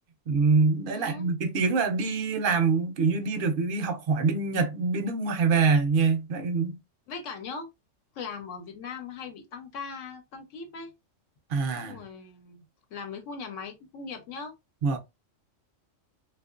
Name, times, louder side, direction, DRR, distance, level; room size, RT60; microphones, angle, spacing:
voice 1, 0.3-6.8 11.5-12.0 14.8-15.0, right 4 dB, 60° right, 0.6 m, -25 dB
voice 2, 0.9-1.3 7.1-7.7 8.1-10.9 11.8-12.6 12.9-14.5, left 5 dB, 80° left, 1.0 m, -39 dB
2.7 x 2.5 x 2.4 m
omnidirectional pair, 1.3 m